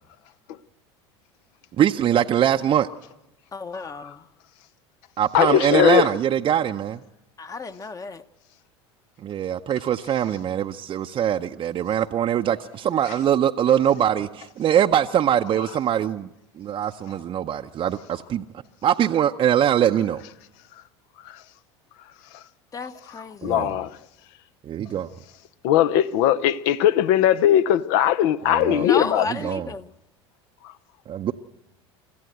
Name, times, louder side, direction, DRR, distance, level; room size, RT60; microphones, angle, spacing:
voice 1, 1.8-2.9 5.2-7.0 9.3-16.3 16.6-18.4 18.8-20.2 23.4-23.7 24.6-25.1 28.5-28.9 29.4-29.7 31.1-31.3, right 10 dB, 35° right, 0.6 m, -22 dB
voice 2, 3.5-4.2 7.4-8.2 22.7-23.7 28.8-29.9, left 4 dB, 25° left, 1.0 m, -32 dB
voice 3, 5.3-6.1 21.2-21.4 23.4-24.0 25.6-29.3, left 11 dB, 65° left, 0.8 m, -19 dB
24.5 x 14.5 x 7.9 m
hypercardioid pair, 85°, 15 cm